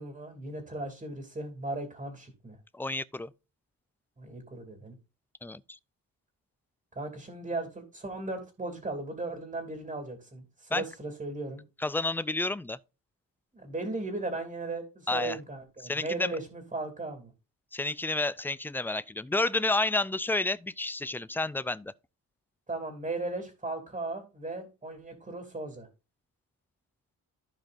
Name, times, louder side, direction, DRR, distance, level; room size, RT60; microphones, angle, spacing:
voice 1, 0.0-2.6 4.2-4.9 6.9-11.6 13.5-17.3 22.7-25.9, right 2 dB, 20° right, 2.7 m, -37 dB
voice 2, 2.7-3.3 5.4-5.8 10.7-10.8 11.8-12.8 15.1-15.4 15.8-16.3 17.7-21.9, left 2 dB, 5° left, 0.3 m, -30 dB
15.5 x 5.2 x 2.5 m
cardioid pair, 105°, 35 cm